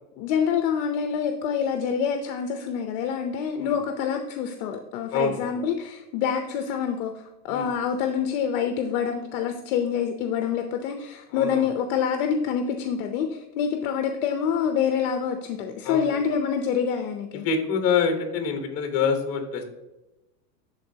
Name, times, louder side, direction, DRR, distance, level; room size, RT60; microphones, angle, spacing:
voice 1, 0.2-17.5, left 7 dB, 60° left, 6 dB, 0.7 m, -26 dB
voice 2, 5.1-5.6 7.5-7.7 11.3-11.7 15.8-16.1 17.3-19.6, left 5 dB, 30° left, 5 dB, 1.1 m, -26 dB
11.5 x 3.9 x 2.8 m, 1.0 s
supercardioid pair, 155°, 48 cm